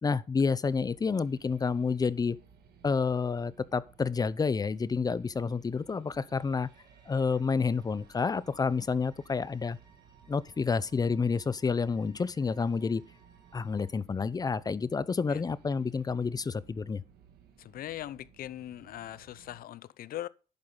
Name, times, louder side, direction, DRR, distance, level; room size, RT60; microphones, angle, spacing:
voice 1, 0.0-2.4 2.8-6.7 7.1-9.8 10.3-13.0 13.5-17.0, left 5 dB, 20° left, 0.6 m, -29 dB
sound 1, 0.6-19.6, right 7 dB, 70° right, 2.2 m, -59 dB
sound 2, 5.7-13.9, right 5 dB, 25° right, 2.2 m, -64 dB
voice 2, 17.6-20.3, left 13 dB, 60° left, 0.7 m, -40 dB
10.5 x 8.8 x 3.9 m
cardioid pair, 110°, 17 cm